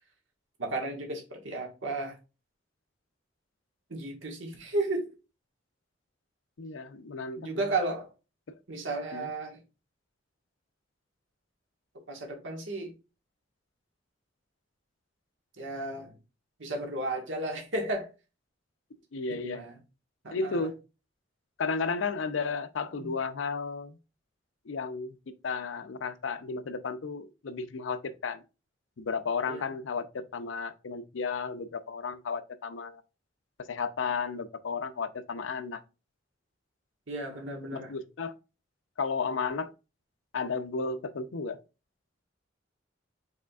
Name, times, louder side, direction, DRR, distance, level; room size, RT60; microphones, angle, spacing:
voice 1, 0.6-2.1 3.9-5.1 7.4-8.1 8.7-9.6 12.1-12.9 15.6-16.1 16.6-18.1 19.3-19.8 20.2-20.7 23.0-23.2 29.5-29.7 37.1-37.9, right 2 dB, 85° right, 1.5 m, -34 dB
voice 2, 6.6-7.6 9.1-9.3 19.1-19.6 20.3-20.8 21.6-24.0 24.7-25.2 25.4-28.4 29.0-33.0 33.7-35.8 37.7-38.3 39.0-39.7 40.3-41.6, left 4 dB, 85° left, 0.5 m, -33 dB
4.9 x 4.3 x 2.3 m
head